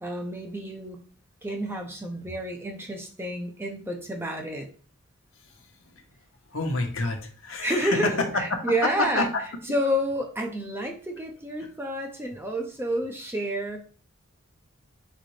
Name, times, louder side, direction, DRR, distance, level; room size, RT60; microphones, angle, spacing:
voice 1, 0.0-1.0 1.4-4.7 7.6-9.3 9.7-13.8, equal, 10° right, 3 dB, 0.6 m, -29 dB
voice 2, 6.5-8.1 8.8-9.3, left 2 dB, 70° left, 3 dB, 0.9 m, -27 dB
4.0 x 3.9 x 3.2 m, 0.41 s
head